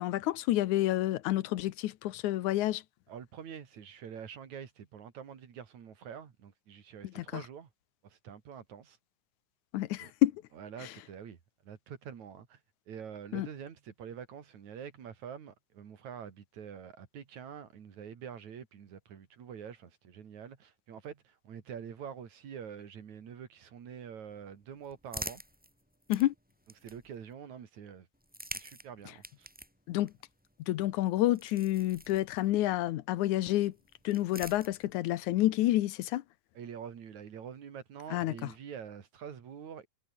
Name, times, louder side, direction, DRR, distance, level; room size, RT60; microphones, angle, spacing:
voice 1, 0.0-2.8 7.0-7.4 9.7-10.4 10.8-10.9 13.3-13.5 26.1-26.3 29.9-30.1 30.7-33.7 34.0-36.2 38.1-38.4, left 15 dB, 80° left, 2.3 m, -29 dB
voice 2, 3.1-7.7 8.0-9.0 10.0-10.1 10.5-12.6 12.9-25.4 26.8-28.1 28.5-29.5 36.6-39.9, right 8 dB, 75° right, 3.8 m, -46 dB
sound 1, 24.3-27.3 28.1-32.7 33.7-35.2, equal, 5° right, 6.0 m, -47 dB
omnidirectional pair, 3.4 m